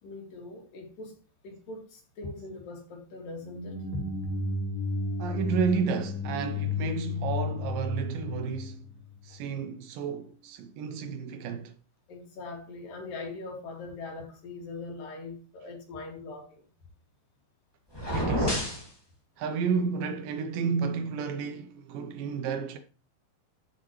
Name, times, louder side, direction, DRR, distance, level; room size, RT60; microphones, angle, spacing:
voice 1, 0.0-1.1 1.4-4.0 12.1-16.6, left 3 dB, 65° left, 3.9 m, -41 dB
sound 1, 3.4-9.3, left 2 dB, 5° right, 2.5 m, -33 dB
voice 2, 5.2-8.8 9.2-11.7 18.1-18.6 19.4-22.8, right 5 dB, 75° right, 2.3 m, -31 dB
sound 2, 17.9-18.9, equal, 15° left, 1.0 m, -28 dB
14.0 x 6.2 x 3.1 m
omnidirectional pair, 4.4 m